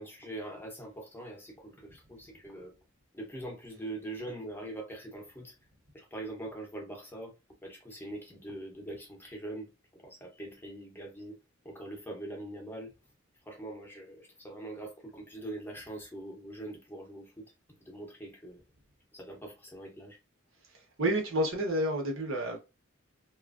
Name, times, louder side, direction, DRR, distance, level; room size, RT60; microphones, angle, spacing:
voice 1, 0.0-2.7 3.1-5.5 5.9-7.3 7.6-11.4 11.6-12.9 13.4-17.5 17.8-18.6 19.1-20.2, right 1 dB, 10° left, 0.7 m, -43 dB
voice 2, 20.7-22.6, right 1 dB, 75° right, 1.0 m, -30 dB
2.9 x 2.4 x 2.4 m
head